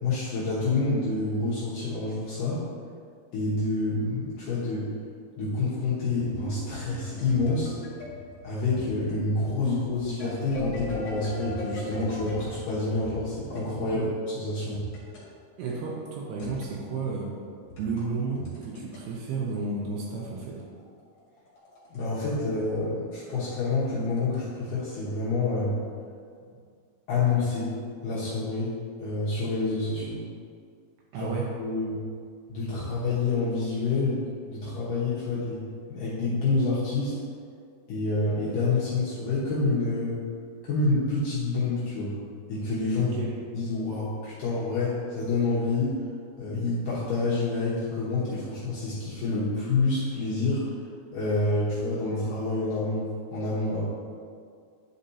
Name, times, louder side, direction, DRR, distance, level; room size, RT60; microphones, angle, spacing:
voice 1, 0.0-2.6 3.3-4.9 5.4-7.8 8.4-14.0 14.3-14.8 21.9-25.8 27.1-27.7 28.0-28.7 29.0-30.2 31.2-31.3 31.6-32.0 32.5-34.2 34.5-35.6 35.9-37.2 37.9-40.2 40.6-42.2 42.5-43.2 43.5-46.0 46.4-50.7 51.1-53.9, left 3 dB, 65° left, -10 dB, 2.3 m, -28 dB
sound 1, 6.1-13.7 14.7-15.3 16.4-16.8 17.6-19.0 20.4-22.4 22.7-22.8 23.4-24.4, left 1 dB, 45° left, 2.4 m, -40 dB
voice 2, 13.8-14.1 15.6-17.4 17.8-20.6 26.5-26.6 31.1-31.5 43.0-43.4, right 4 dB, 80° right, -3 dB, 2.7 m, -32 dB
10.0 x 5.2 x 2.8 m, 2.2 s
omnidirectional pair, 4.8 m